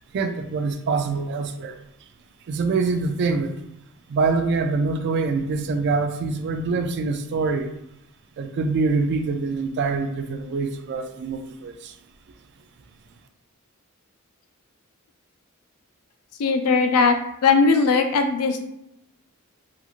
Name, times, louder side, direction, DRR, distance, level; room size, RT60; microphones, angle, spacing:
voice 1, 0.1-1.8 2.5-3.6 4.1-7.7 8.4-11.9, right 4 dB, 50° right, 7 dB, 0.3 m, -25 dB
voice 2, 16.4-18.7, left 4 dB, 80° left, 6 dB, 0.4 m, -19 dB
2.9 x 2.4 x 2.4 m, 0.82 s
head